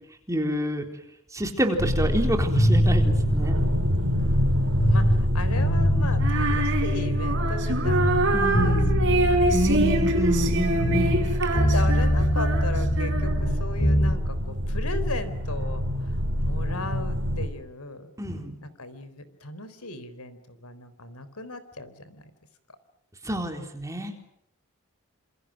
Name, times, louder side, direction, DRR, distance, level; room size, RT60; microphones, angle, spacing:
voice 1, 0.3-0.9 1.3-3.5 5.8-6.1 8.3-8.9 9.5-11.5 18.2-18.6 23.2-24.1, equal, 15° right, 4 dB, 3.9 m, -28 dB
sound 1, 1.8-17.5, equal, 70° right, 4.4 m, -27 dB
sound 2, 2.5-5.2 5.5-7.6 7.9-11.3 11.5-14.2, equal, 60° left, 4.0 m, -24 dB
voice 2, 4.2-8.8 9.2-9.6 10.6-11.1 11.5-18.1 18.6-22.3, left 2 dB, 80° left, 13 dB, 3.9 m, -37 dB
Female singing, 6.2-13.6, right 1 dB, 55° right, 5.3 m, -26 dB
28.5 x 27.5 x 6.3 m, 0.77 s
head